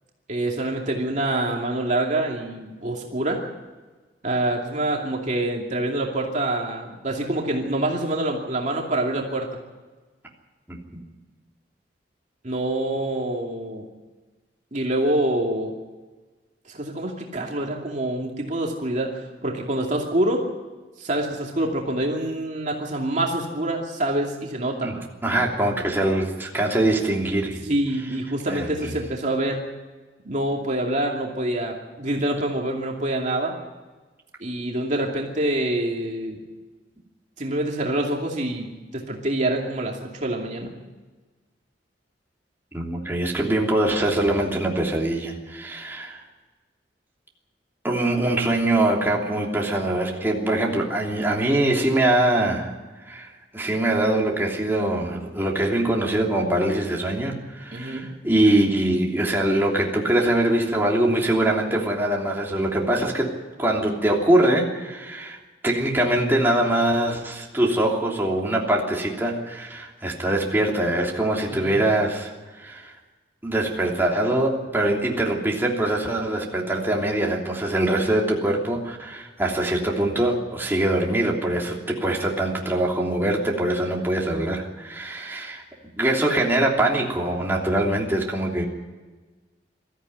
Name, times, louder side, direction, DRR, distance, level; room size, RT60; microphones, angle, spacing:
voice 1, 0.3-3.4 4.2-9.5 12.4-13.9 14.7-15.7 16.7-20.4 21.0-24.9 27.6-29.6 30.2-33.5 34.4-36.4 37.4-40.7 57.7-58.1 71.5-71.8, right 1 dB, 45° right, 0 dB, 2.6 m, -26 dB
voice 2, 24.8-27.6 28.5-28.9 42.7-46.2 47.8-52.7 53.1-65.4 65.6-72.9 73.4-85.6 86.0-88.7, right 1 dB, 15° right, -2 dB, 3.1 m, -23 dB
22.0 x 14.0 x 9.5 m, 1.3 s
head